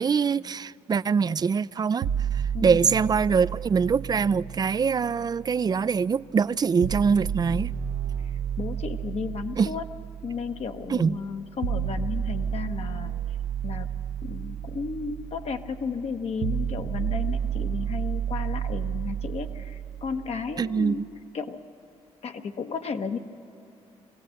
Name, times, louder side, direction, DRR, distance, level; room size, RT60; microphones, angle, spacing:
voice 1, 0.0-7.7 9.6-9.7 10.9-11.2 20.6-21.1, right 6 dB, 35° right, 0.4 m, -24 dB
sound 1, 2.0-6.0 6.8-20.8, right 8 dB, 75° right, 0.6 m, -32 dB
voice 2, 8.6-9.9 10.2-13.1 13.6-13.9 14.2-21.0 21.3-21.6 22.2-23.2, left 5 dB, 60° left, 1.1 m, -33 dB
22.5 x 16.5 x 7.8 m
supercardioid pair, 65°, 12 cm